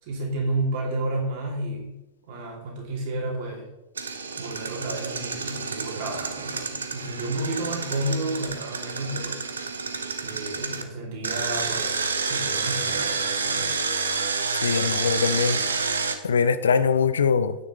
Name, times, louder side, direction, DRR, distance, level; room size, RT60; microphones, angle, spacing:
voice 1, 0.0-2.0 2.3-3.7 4.4-9.4 10.2-12.0 12.3-13.7, right 2 dB, 45° right, -2 dB, 2.9 m, -31 dB
Engine, 4.0-10.8 11.2-16.2, right 4 dB, 75° right, 0.9 m, -29 dB
voice 2, 14.6-15.6 16.2-17.6, left 6 dB, 70° left, 13 dB, 0.6 m, -22 dB
9.4 x 9.4 x 3.2 m, 0.95 s
figure-of-eight pair, 90°, 0 cm